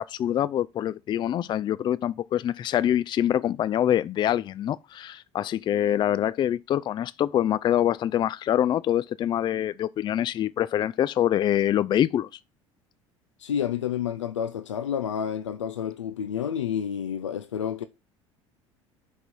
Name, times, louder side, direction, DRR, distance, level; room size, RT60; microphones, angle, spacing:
voice 1, 0.0-12.3, left 11 dB, 30° left, 0.4 m, -25 dB
voice 2, 13.4-17.8, left 8 dB, 75° left, 0.6 m, -29 dB
6.5 x 5.4 x 6.0 m
figure-of-eight pair, 65°, 16 cm